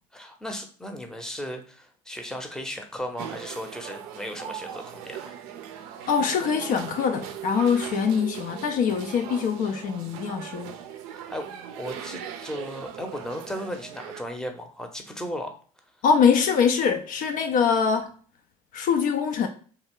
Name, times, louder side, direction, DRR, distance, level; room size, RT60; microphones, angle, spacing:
voice 1, 0.1-5.3 11.1-15.6, equal, 5° left, 0.7 m, -36 dB
sound 1, 3.2-14.2, right 9 dB, 70° right, 0.4 m, -39 dB
voice 2, 6.1-10.7 16.0-18.1 18.7-19.5, left 6 dB, 50° left, 0.4 m, -23 dB
3.2 x 2.3 x 3.5 m
hypercardioid pair, 65°, 18 cm